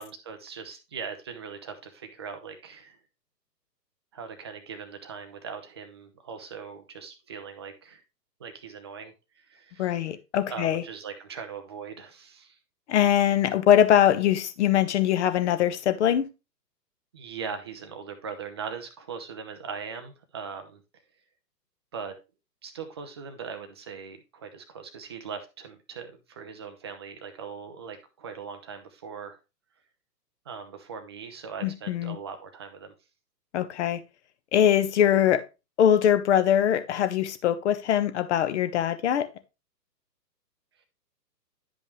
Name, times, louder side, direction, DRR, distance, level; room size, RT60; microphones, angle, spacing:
voice 1, 0.0-3.0 4.1-8.0 8.4-10.0 10.5-12.6 17.1-20.8 21.9-22.1 22.6-29.4 30.5-32.9, right 6 dB, 15° right, 0.4 m, -40 dB
voice 2, 9.8-10.8 12.9-16.3 31.6-32.2 33.5-34.0 34.5-35.4 35.8-39.3, left 10 dB, 45° left, 0.9 m, -22 dB
10.5 x 5.4 x 3.1 m
hypercardioid pair, 130°, 50 cm